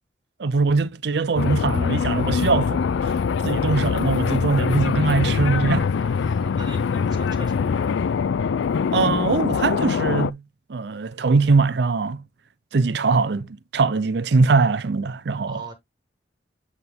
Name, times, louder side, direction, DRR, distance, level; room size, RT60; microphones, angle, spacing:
voice 1, 0.4-3.1 3.4-5.9 8.9-10.4 10.7-12.2 12.7-13.5 13.7-15.6, right 4 dB, 65° right, 0.5 m, -21 dB
sound 1, 1.4-10.3, left 6 dB, 85° left, 0.4 m, -23 dB
voice 2, 6.0-7.9 15.5-15.7, right 2 dB, 25° right, 2.1 m, -41 dB
8.2 x 3.7 x 3.6 m
head